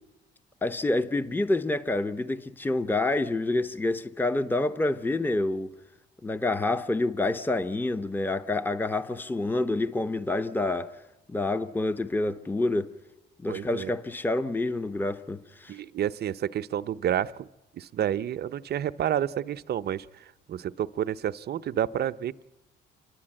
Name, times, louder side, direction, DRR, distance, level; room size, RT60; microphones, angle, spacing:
voice 1, 0.6-5.7 6.2-10.9 11.3-12.9 13.4-15.8, left 2 dB, 10° left, 0.8 m, -28 dB
voice 2, 13.5-13.9 15.7-17.5 17.8-20.1 20.5-22.4, right 10 dB, 55° right, 0.6 m, -29 dB
28.5 x 11.5 x 8.8 m
cardioid pair, 90°, 20 cm